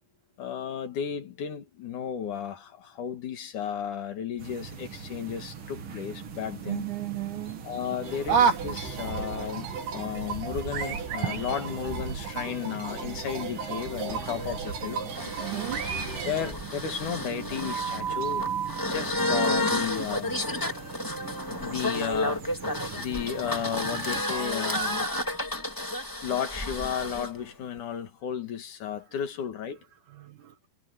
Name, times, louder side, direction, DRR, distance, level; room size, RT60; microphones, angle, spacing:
voice 1, 0.4-6.9 7.6-15.0 16.2-18.5 18.8-20.3 21.6-25.1 26.2-29.8, left 8 dB, 60° left, 3.1 m, -34 dB
sound 1, 4.4-24.2, right 7 dB, 45° right, 1.9 m, -41 dB
voice 2, 6.6-7.6 15.4-15.9 20.8-21.0 30.1-30.5, right 17 dB, 65° right, 2.3 m, -36 dB
sound 2, 8.0-16.5, right 5 dB, 90° right, 5.4 m, -31 dB
sound 3, 13.6-27.3, equal, 10° left, 1.2 m, -31 dB
omnidirectional pair, 4.3 m